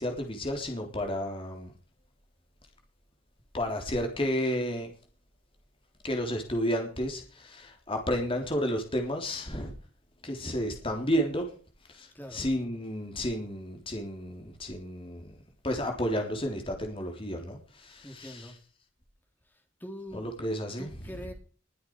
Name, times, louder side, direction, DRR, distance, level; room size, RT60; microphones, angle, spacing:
voice 1, 0.0-1.7 3.5-4.9 6.0-9.7 10.2-11.5 11.9-15.4 15.6-18.5 20.1-20.9, equal, 25° left, 3.5 m, -32 dB
voice 2, 12.1-12.5 18.0-18.6 19.5-20.4 20.8-21.3, equal, 10° left, 3.5 m, -43 dB
21.5 x 7.9 x 4.8 m
head